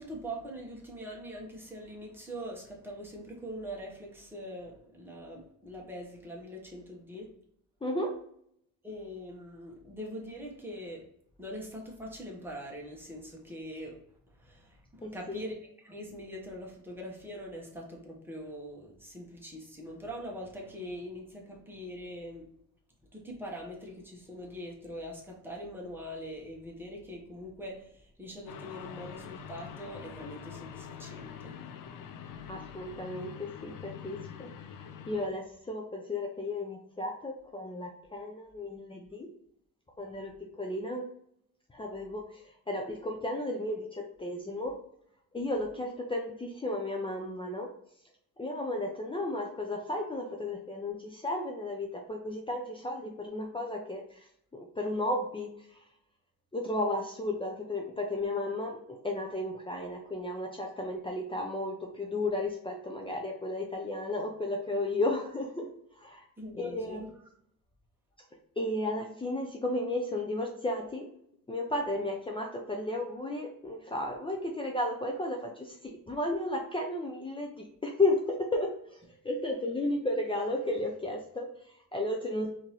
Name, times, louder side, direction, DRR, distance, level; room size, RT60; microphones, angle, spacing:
voice 1, 0.0-7.3 8.8-11.0 11.4-14.0 14.3-15.5 15.8-22.4 23.1-31.5 66.4-67.1, equal, 5° right, -2 dB, 1.2 m, -43 dB
voice 2, 7.8-8.1 15.0-15.4 32.5-39.3 40.0-41.0 41.7-44.7 45.3-47.7 48.4-55.8 56.5-65.7 65.9-66.3 66.6-67.0 68.6-71.1 71.5-79.0 79.2-82.5, left 2 dB, 15° left, 0 dB, 0.6 m, -34 dB
sound 1, 28.5-35.3, left 7 dB, 70° left, 0.5 m, -45 dB
3.6 x 2.9 x 3.1 m, 0.69 s
cardioid pair, 95°, 34 cm